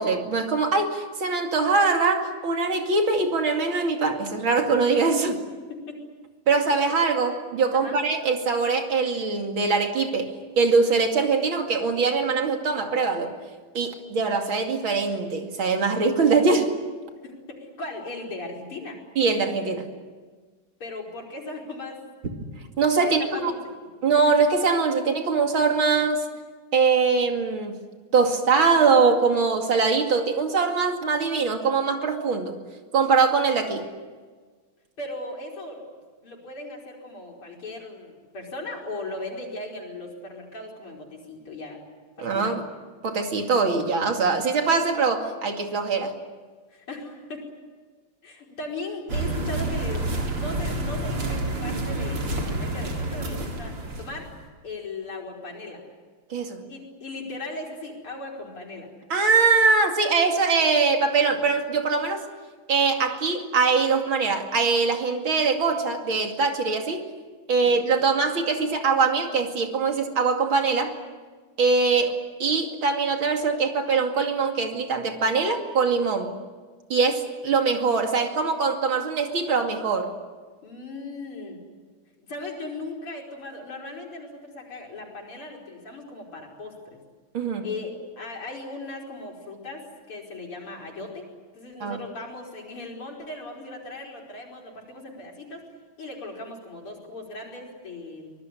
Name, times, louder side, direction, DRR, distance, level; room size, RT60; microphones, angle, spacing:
voice 1, 0.0-5.4 6.5-13.3 13.7-16.7 19.2-19.9 22.8-23.5 24.0-26.2 26.7-27.8 28.1-32.5 32.9-33.9 42.2-42.6 43.0-46.2 56.3-56.6 59.1-62.2 62.7-67.1 67.5-71.0 71.6-76.3 76.9-80.1 87.3-87.7 91.8-92.0, right 4 dB, 70° right, 4 dB, 3.3 m, -22 dB
voice 2, 6.5-6.9 7.7-8.0 17.2-19.0 20.8-22.0 22.9-23.6 24.0-24.1 35.0-35.8 36.2-41.8 42.2-42.6 46.7-47.5 48.2-54.3 54.6-55.8 56.7-58.9 67.6-67.8 80.6-81.6 82.2-87.0 87.6-91.3 91.5-95.6 96.0-98.3, left 2 dB, 80° left, -1 dB, 5.9 m, -38 dB
sound 1, 49.1-54.3, right 2 dB, 90° right, 4.7 m, -29 dB
25.0 x 20.0 x 9.9 m, 1.4 s
omnidirectional pair, 2.4 m